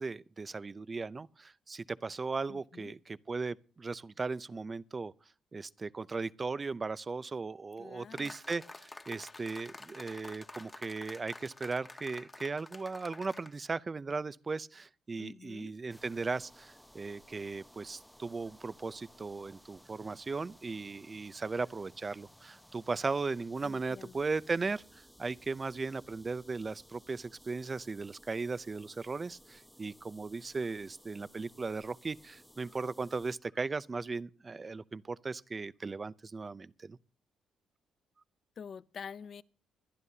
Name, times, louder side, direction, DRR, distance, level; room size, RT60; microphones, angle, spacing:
voice 1, 0.0-5.1 5.5-37.0, right 4 dB, 30° right, 0.5 m, -37 dB
voice 2, 2.5-2.9 7.8-8.3 15.2-15.7 23.6-24.2 38.6-39.4, left 6 dB, 50° left, 0.6 m, -47 dB
sound 1, 8.2-13.5, left 2 dB, 20° left, 1.2 m, -49 dB
sound 2, 15.9-33.4, equal, ahead, 0.8 m, -59 dB
23.0 x 11.5 x 2.8 m
cardioid pair, 90°, 0 cm